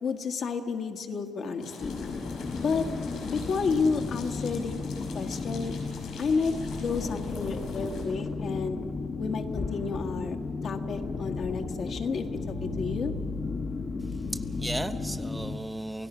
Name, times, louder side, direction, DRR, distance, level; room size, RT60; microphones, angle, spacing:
voice 1, 0.0-1.9 2.6-2.9 3.3-4.7 5.1-5.7 6.2-6.5 6.8-8.8 9.2-10.4 10.6-12.3 12.6-13.1, left 5 dB, 60° left, 5 dB, 1.6 m, -30 dB
sound 1, 1.6-8.1, left 4 dB, 80° left, 5.8 m, -45 dB
Haunted Ghost Ship, 1.8-15.6, left 4 dB, 40° left, 1.0 m, -34 dB
voice 2, 14.0-16.1, right 1 dB, 10° right, 9 dB, 0.7 m, -36 dB
28.5 x 16.5 x 6.2 m, 2.7 s
cardioid pair, 90°, 0 cm